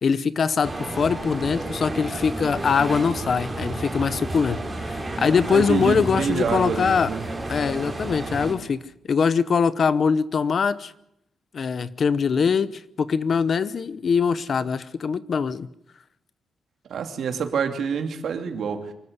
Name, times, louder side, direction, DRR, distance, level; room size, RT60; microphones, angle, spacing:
voice 1, 0.0-7.1 7.5-8.8 9.1-10.9 11.5-15.7, left 6 dB, 45° left, 0.8 m, -23 dB
sound 1, 0.6-8.5, right 2 dB, 10° right, 4.8 m, -31 dB
voice 2, 5.5-7.2 16.9-18.9, right 6 dB, 70° right, 2.6 m, -27 dB
25.0 x 14.0 x 9.6 m
wide cardioid pair, 170°, 0 cm